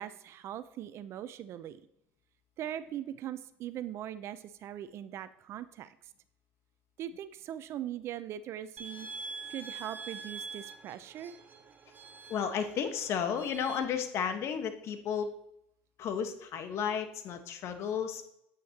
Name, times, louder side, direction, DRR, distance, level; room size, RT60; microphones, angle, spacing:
voice 1, 0.0-1.8 2.6-6.0 7.0-11.4, right 11 dB, 55° right, 14 dB, 0.6 m, -41 dB
sound 1, 8.8-13.8, right 4 dB, 35° right, 1.3 m, -45 dB
voice 2, 12.3-15.3 16.0-18.2, left 7 dB, 55° left, 7 dB, 1.4 m, -33 dB
9.1 x 9.0 x 3.0 m, 0.77 s
hypercardioid pair, 80°, 6 cm